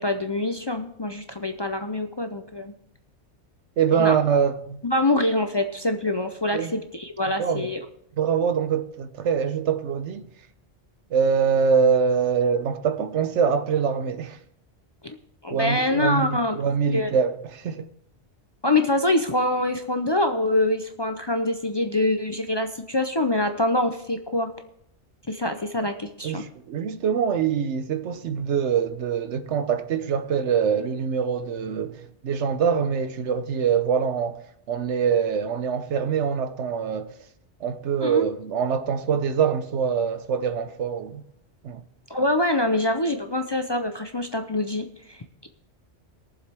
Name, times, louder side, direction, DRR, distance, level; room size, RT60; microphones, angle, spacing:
voice 1, 0.0-2.7 3.9-4.2 4.8-7.8 15.0-15.2 15.4-16.6 16.9-17.1 18.6-24.5 25.3-26.4 38.0-38.3 42.1-45.5, left 1 dB, 30° left, 0.5 m, -25 dB
voice 2, 3.8-4.8 6.5-6.7 7.4-7.7 8.2-10.3 11.1-14.4 15.5-17.8 26.2-37.1 37.6-41.2 41.6-41.8, right 7 dB, 80° right, 1.0 m, -24 dB
21.5 x 7.4 x 3.4 m
omnidirectional pair, 1.2 m